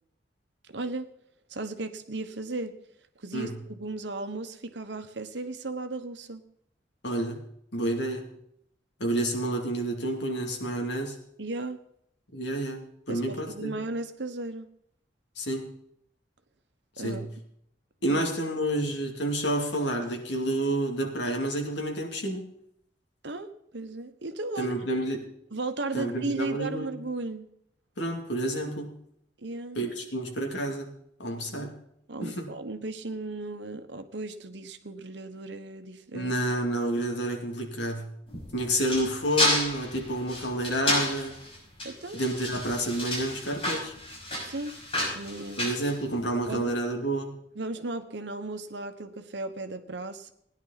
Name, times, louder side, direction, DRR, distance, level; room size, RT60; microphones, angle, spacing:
voice 1, 0.7-1.1 1.5-2.8 3.2-6.4 11.4-11.8 13.1-14.7 17.0-17.3 18.1-18.2 23.2-24.8 25.5-27.5 29.4-29.8 31.5-31.6 32.1-36.3 41.8-42.2 44.4-45.7 46.5-46.7 47.5-50.3, right 2 dB, 75° right, 9 dB, 1.2 m, -36 dB
voice 2, 7.0-7.4 7.7-8.3 9.0-11.2 12.3-13.8 15.4-15.7 17.0-17.2 18.0-22.5 24.6-25.3 25.9-27.0 28.0-29.0 29.7-30.9 31.2-31.7 32.2-32.5 36.1-38.1 38.5-41.4 42.1-43.9 45.6-47.3, right 1 dB, 80° left, 2 dB, 2.7 m, -29 dB
sound 1, 38.3-46.5, left 1 dB, 30° left, 5.9 m, -31 dB
17.5 x 10.5 x 4.1 m, 0.71 s
head